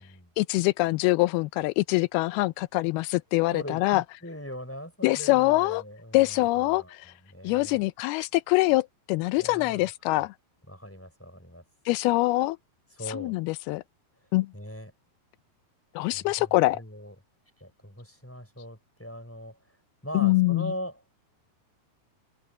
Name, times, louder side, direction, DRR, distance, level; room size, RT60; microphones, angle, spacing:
voice 1, 0.4-4.0 5.0-5.8 6.1-7.1 7.4-10.3 11.9-12.6 13.1-13.8 14.3-14.5 16.0-16.8 20.1-20.7, left 20 dB, 85° left, 2.4 m, -24 dB
voice 2, 3.5-6.9 7.2-7.8 9.4-9.9 10.7-11.6 12.9-13.4 14.5-14.9 16.1-17.1 17.6-19.6 20.0-21.0, equal, 5° left, 5.1 m, -40 dB
omnidirectional pair, 4.6 m